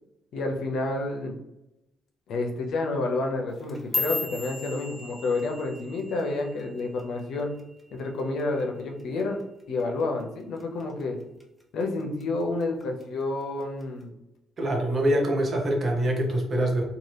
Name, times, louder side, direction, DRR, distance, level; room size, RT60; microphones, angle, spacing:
voice 1, 0.3-1.3 2.3-7.5 7.9-9.4 9.7-11.2 11.7-14.1, left 2 dB, 75° left, 2 dB, 0.5 m, -29 dB
sound 1, 3.5-7.9 8.2-8.6 9.0-9.4 9.8-10.0 10.6-11.0 11.4-12.2 12.6-13.0 13.8-13.9, left 3 dB, ahead, 0.6 m, -35 dB
voice 2, 14.6-16.8, right 1 dB, 45° right, 1 dB, 0.8 m, -24 dB
2.7 x 2.3 x 3.2 m, 0.92 s
cardioid pair, 90°, 0 cm